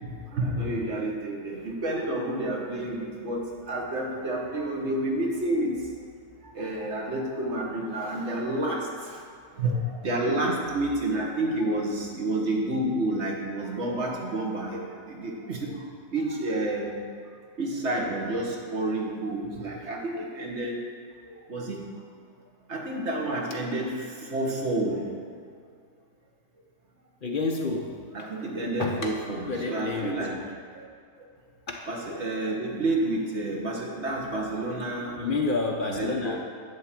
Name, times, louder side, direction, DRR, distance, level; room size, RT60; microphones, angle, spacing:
voice 1, 0.0-5.8 6.4-9.2 9.5-17.0 17.6-20.8 21.2-21.8 22.7-25.0 28.1-30.4 30.7-30.9 31.9-35.3 35.8-36.3, right 1 dB, 55° right, -1 dB, 1.5 m, -30 dB
voice 2, 27.2-28.3 28.8-30.3 31.7-31.9 35.2-36.4, left 3 dB, 45° left, 1 dB, 0.8 m, -30 dB
11.0 x 3.8 x 7.4 m, 2.2 s
omnidirectional pair, 1.5 m